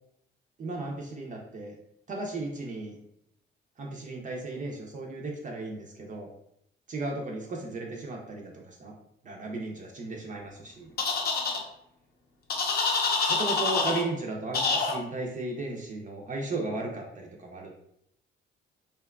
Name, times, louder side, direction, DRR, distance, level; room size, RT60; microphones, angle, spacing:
voice 1, 0.6-1.7 2.1-3.0 3.8-6.3 6.9-8.9 9.2-10.9 13.3-17.7, right 2 dB, 40° right, 0 dB, 0.5 m, -35 dB
sound 1, 11.0-11.6 12.5-14.0 14.5-14.9, left 4 dB, 50° left, 0.6 m, -26 dB
2.7 x 2.2 x 2.2 m, 0.76 s
cardioid pair, 90°, 20 cm